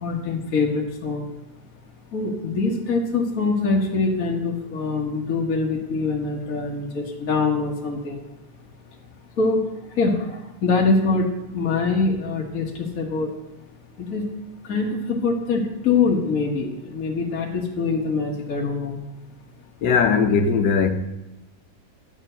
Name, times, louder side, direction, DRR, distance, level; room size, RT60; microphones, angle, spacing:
voice 1, 0.0-1.2 2.1-8.2 9.4-9.6 10.0-11.3 11.5-13.3 14.0-14.2 14.6-19.0, left 4 dB, 50° left, 1.6 m, -24 dB
voice 2, 19.8-20.9, left 5 dB, 70° left, 1.5 m, -19 dB
10.0 x 7.3 x 6.4 m
omnidirectional pair, 2.0 m